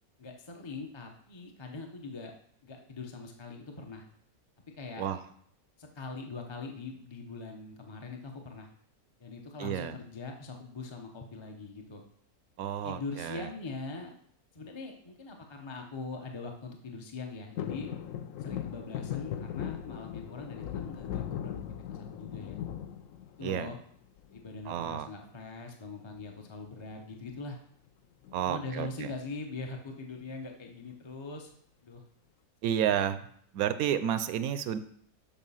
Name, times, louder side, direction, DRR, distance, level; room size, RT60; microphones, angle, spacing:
voice 1, 0.2-2.3 2.6-4.1 4.8-5.0 5.8-8.7 9.2-12.0 12.8-14.1 14.5-17.9 18.4-22.6 23.4-23.8 24.3-27.6 28.4-31.5 31.8-32.0, left 3 dB, 25° left, 2 dB, 0.6 m, -42 dB
voice 2, 9.6-9.9 12.6-13.5 23.4-23.7 24.7-25.1 28.3-29.1 32.6-33.2 33.5-34.8, right 9 dB, 75° right, 12 dB, 1.0 m, -31 dB
sound 1, 17.6-23.7 24.2-24.8 26.1-26.5 26.7-26.8 27.1-27.4 28.2-29.2 29.6-29.7, left 10 dB, 70° left, 0.9 m, -39 dB
7.2 x 5.2 x 5.5 m, 0.65 s
omnidirectional pair, 1.6 m